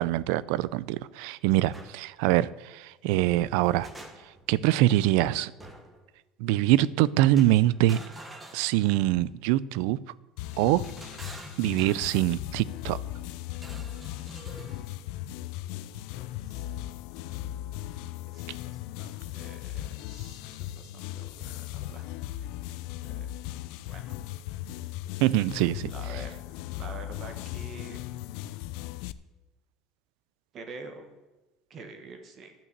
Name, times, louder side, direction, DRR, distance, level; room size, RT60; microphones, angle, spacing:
voice 1, 0.0-3.9 4.5-5.5 6.4-8.0 8.5-10.0 10.6-10.8 11.6-13.0 25.2-25.9, right 15 dB, 70° right, 20 dB, 0.4 m, -24 dB
sound 1, 1.7-1.9 3.4-4.5 5.6-6.0 7.3-9.2 10.5-12.3 13.5-14.9, right 2 dB, 10° right, 1.0 m, -47 dB
sound 2, 10.4-29.1, left 14 dB, 65° left, 0.4 m, -38 dB
voice 2, 16.2-16.7 18.3-22.1 23.0-23.4 23.7-24.2 25.8-28.1 30.5-31.1 31.7-32.5, right 3 dB, 30° right, 7 dB, 1.1 m, -47 dB
12.0 x 6.0 x 8.0 m, 1.1 s
cardioid pair, 175°, 0 cm